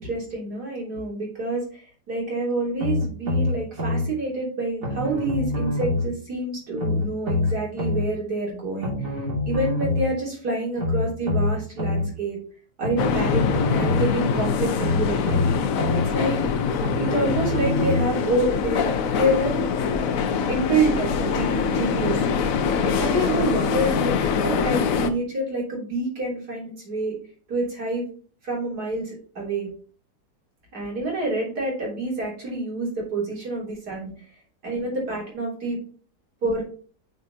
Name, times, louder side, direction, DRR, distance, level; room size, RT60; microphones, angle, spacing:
voice 1, 0.0-1.8 2.1-8.9 9.5-12.4 12.8-15.4 15.9-16.4 17.0-19.6 20.5-22.2 22.8-27.2 27.5-28.1 28.4-29.7 30.7-34.1 34.6-35.8 36.4-36.6, right 2 dB, 75° right, -3 dB, 4.1 m, -27 dB
sound 1, 2.8-4.1 4.8-6.1 6.8-8.1 8.8-10.1 10.8-12.1 12.8-14.1 14.8-16.1 16.8-18.1 18.8-18.9, left 2 dB, 55° right, 3.2 m, -25 dB
sound 2, 13.0-25.1, left 6 dB, 65° left, 1.0 m, -24 dB
9.2 x 5.2 x 2.9 m, 0.41 s
omnidirectional pair, 1.7 m